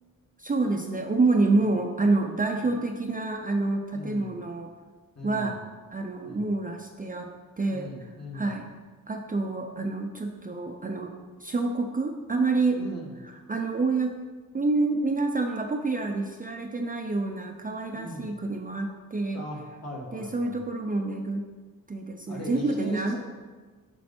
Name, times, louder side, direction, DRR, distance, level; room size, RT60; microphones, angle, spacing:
voice 1, 0.4-4.7 5.2-5.6 5.9-7.3 7.6-8.7 9.1-12.8 13.2-14.2 14.5-19.4 20.1-21.4 21.9-23.2, right 3 dB, 25° right, 3 dB, 0.5 m, -28 dB
voice 2, 3.9-4.3 5.2-5.5 6.2-6.5 7.7-8.5 12.8-13.1 17.9-18.3 19.3-20.6 22.3-23.2, equal, 50° left, -3 dB, 1.9 m, -38 dB
7.4 x 5.4 x 4.3 m, 1.4 s
wide cardioid pair, 130°, 34 cm